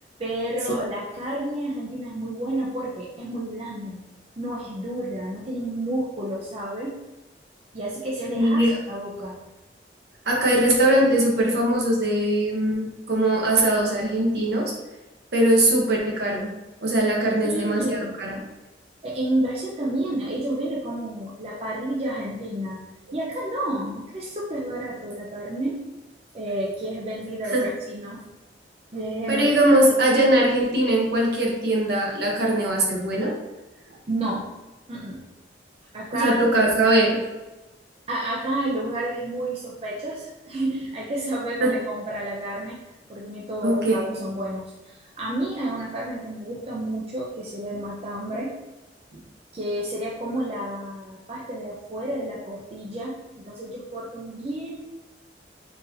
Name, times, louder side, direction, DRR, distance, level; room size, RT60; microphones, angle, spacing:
voice 1, 0.2-4.1 4.4-7.0 7.7-8.6 8.9-9.5 17.4-18.2 19.0-22.8 23.1-25.9 26.3-28.2 28.9-29.5 34.1-34.5 34.9-35.2 35.9-36.4 38.1-42.8 43.1-48.5 49.5-53.2 53.4-54.8, right 1 dB, 35° right, -5 dB, 0.5 m, -30 dB
voice 2, 8.3-8.7 10.3-14.7 15.3-16.5 16.8-18.4 27.5-27.7 29.3-33.3 36.1-37.2 41.6-41.7 43.6-44.0, right 1 dB, 60° right, -2 dB, 0.8 m, -21 dB
3.9 x 2.6 x 2.7 m, 1.1 s
head